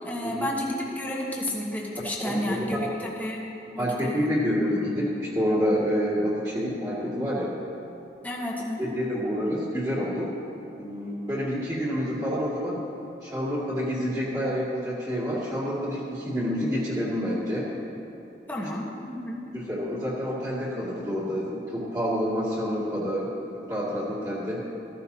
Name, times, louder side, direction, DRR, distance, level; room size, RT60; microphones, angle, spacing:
voice 1, 0.0-3.4 3.7-4.4 8.2-8.9 18.5-19.4, left 1 dB, 10° left, -3 dB, 1.3 m, -31 dB
voice 2, 2.2-2.9 3.8-7.6 8.8-10.3 10.8-12.8 13.2-17.7 19.5-24.6, equal, 20° right, -9 dB, 2.3 m, -28 dB
14.5 x 13.5 x 2.8 m, 2.9 s
head